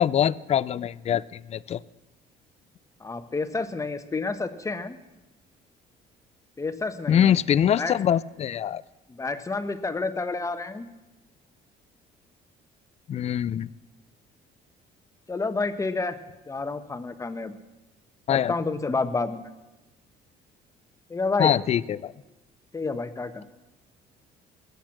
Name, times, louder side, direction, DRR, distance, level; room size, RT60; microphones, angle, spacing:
voice 1, 0.0-1.8 7.1-8.8 13.1-13.7 18.3-18.5 21.4-22.1, left 9 dB, 40° left, 20 dB, 0.4 m, -23 dB
voice 2, 3.0-5.0 6.6-7.3 7.8-8.0 9.1-10.9 15.3-16.2 16.5-17.5 18.3-19.5 21.1-21.5 22.7-23.4, left 3 dB, 20° left, 10 dB, 1.0 m, -29 dB
21.5 x 8.2 x 5.9 m, 1.0 s
cardioid pair, 110°, 17 cm